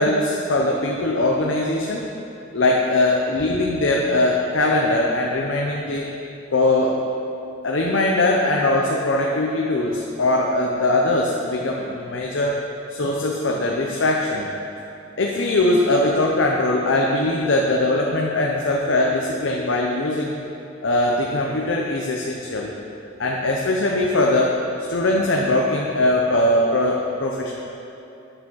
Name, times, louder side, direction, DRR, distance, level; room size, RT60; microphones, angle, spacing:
voice 1, 0.0-2.1 2.5-6.1 6.5-7.0 7.6-12.6 12.9-14.5 15.2-20.3 20.8-22.7 23.2-24.6 24.9-27.6, left 2 dB, 70° left, -1 dB, 0.8 m, -21 dB
8.9 x 7.1 x 6.3 m, 2.8 s
head